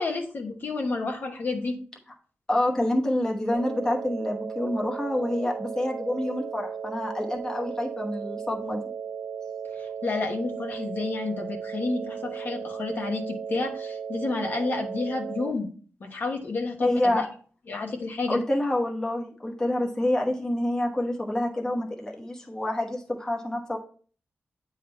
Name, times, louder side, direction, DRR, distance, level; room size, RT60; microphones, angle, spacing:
voice 1, 0.0-1.8 9.8-15.7 16.0-17.2 17.7-18.4, left 3 dB, 50° left, 3 dB, 1.1 m, -30 dB
voice 2, 2.5-8.9 16.8-17.3 18.3-23.8, left 1 dB, 15° left, 0 dB, 1.0 m, -27 dB
sound 1, 3.5-15.5, right 7 dB, 80° right, 0.4 m, -36 dB
9.3 x 3.7 x 4.3 m, 0.42 s
wide cardioid pair, 165°, 4 cm